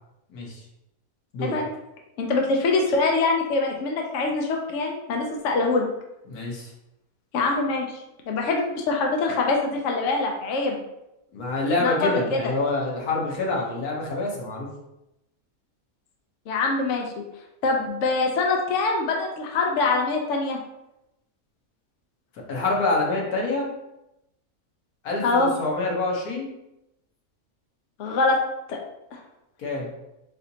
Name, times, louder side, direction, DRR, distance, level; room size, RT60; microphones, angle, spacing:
voice 1, 1.4-1.7 2.2-5.8 7.3-10.8 11.8-12.5 16.5-17.2 17.6-20.6 25.2-25.5 28.0-28.4 28.7-28.8, left 3 dB, 65° left, 1 dB, 0.9 m, -24 dB
voice 2, 6.3-6.7 11.3-14.7 22.5-23.7 25.0-25.2 25.6-26.5 29.6-29.9, left 2 dB, 80° left, -2 dB, 1.5 m, -26 dB
4.2 x 3.9 x 2.7 m, 0.89 s
omnidirectional pair, 1.6 m